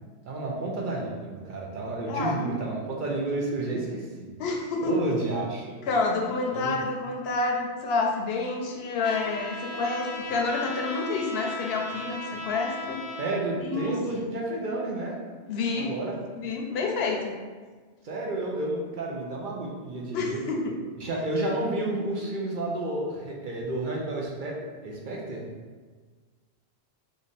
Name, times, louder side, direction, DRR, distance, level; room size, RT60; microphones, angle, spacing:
voice 1, 0.3-4.3 4.8-5.8 6.5-6.8 13.2-15.1 15.7-16.2 18.0-20.4 21.0-24.5 24.8-25.4, right 2 dB, 55° right, -2 dB, 0.7 m, -31 dB
voice 2, 4.4-5.0 5.9-13.0 13.6-13.9 15.5-15.9 16.3-17.3 20.1-20.8, left 3 dB, 75° left, 1 dB, 0.8 m, -28 dB
Trumpet, 9.0-13.3, left 2 dB, 50° left, 0.4 m, -37 dB
3.3 x 2.4 x 4.0 m, 1.4 s
omnidirectional pair, 1.1 m